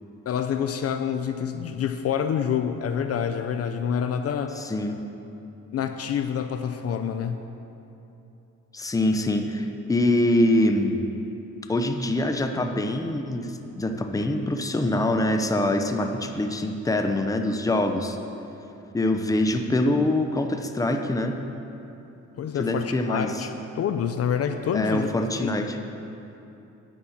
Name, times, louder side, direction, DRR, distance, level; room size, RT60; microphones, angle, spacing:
voice 1, 0.3-4.6 5.7-7.5 22.3-25.1 25.4-25.5, left 8 dB, 50° left, 8 dB, 0.5 m, -27 dB
voice 2, 4.6-5.0 8.7-11.0 11.7-18.2 18.9-21.4 22.6-23.5 24.7-25.8, left 1 dB, 10° left, 5 dB, 0.7 m, -24 dB
9.8 x 5.6 x 7.1 m, 2.9 s
cardioid pair, 90°, 30 cm